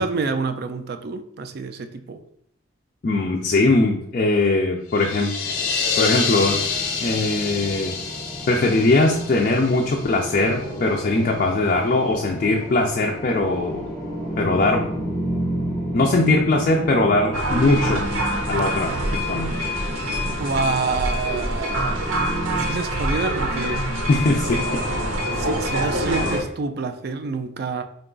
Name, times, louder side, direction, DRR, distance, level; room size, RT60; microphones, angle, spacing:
voice 1, 0.0-2.2 20.1-23.8 25.3-27.8, right 4 dB, 50° right, 9 dB, 0.3 m, -28 dB
voice 2, 3.0-5.3 6.0-6.6 7.0-8.0 8.5-13.9 14.4-14.9 15.9-18.1 18.5-19.6 24.1-24.8, left 2 dB, 40° left, 0 dB, 0.3 m, -20 dB
sound 1, 4.9-10.5, left 5 dB, 85° left, 0.6 m, -27 dB
sound 2, 5.4-22.7, equal, 10° left, 0.7 m, -32 dB
sound 3, 17.3-26.4, equal, 75° right, 0.7 m, -25 dB
3.7 x 2.3 x 3.7 m, 0.72 s
head